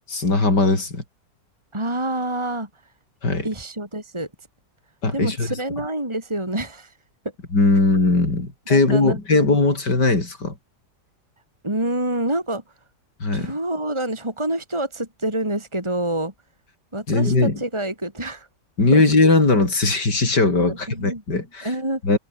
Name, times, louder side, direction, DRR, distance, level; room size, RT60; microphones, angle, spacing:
voice 1, 0.1-1.0 3.2-3.5 5.0-5.6 7.5-10.6 13.2-13.5 17.1-17.6 18.8-21.7 22.0-22.2, left 3 dB, 70° left, 6.0 m, -19 dB
voice 2, 1.7-2.7 3.4-4.3 5.1-6.9 8.7-9.2 11.6-12.6 13.3-16.3 16.9-18.5 18.9-19.0 20.7-21.2 21.6-22.0, right 1 dB, 15° right, 4.1 m, -27 dB
omnidirectional pair, 1.9 m